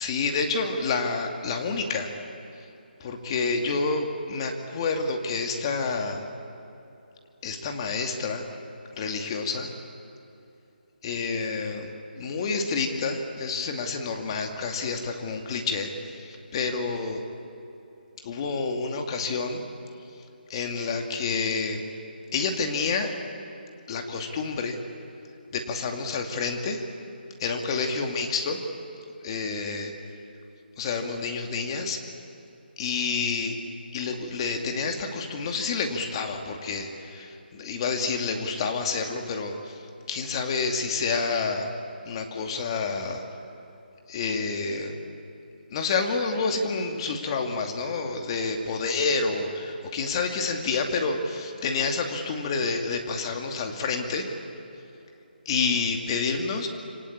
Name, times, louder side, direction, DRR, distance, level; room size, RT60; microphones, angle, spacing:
voice 1, 0.0-2.1 3.0-6.3 7.4-8.4 9.0-9.7 11.0-17.2 18.2-19.6 20.5-21.8 22.3-23.1 23.9-24.8 25.5-26.8 27.4-28.6 29.2-29.9 30.8-32.0 32.8-33.6 33.9-39.8 40.1-41.7 42.1-43.2 44.1-44.9 45.7-54.3 55.5-56.7, left 4 dB, 30° left, 4 dB, 2.4 m, -28 dB
27.0 x 24.5 x 8.8 m, 2.9 s
hypercardioid pair, 165°, 6 cm